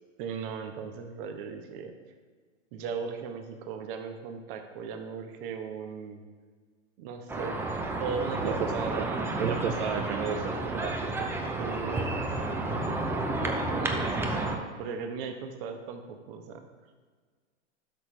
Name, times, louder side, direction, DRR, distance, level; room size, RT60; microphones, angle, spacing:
voice 1, 0.2-1.9 2.7-6.2 7.0-7.6 8.0-9.3 11.6-16.6, right 6 dB, 45° right, 6 dB, 1.1 m, -38 dB
sound 1, 7.3-14.6, right 2 dB, 5° right, 0.5 m, -31 dB
voice 2, 9.4-11.3, right 7 dB, 65° right, 3 dB, 0.8 m, -32 dB
12.0 x 5.9 x 3.3 m, 1.6 s
hypercardioid pair, 125°, 37 cm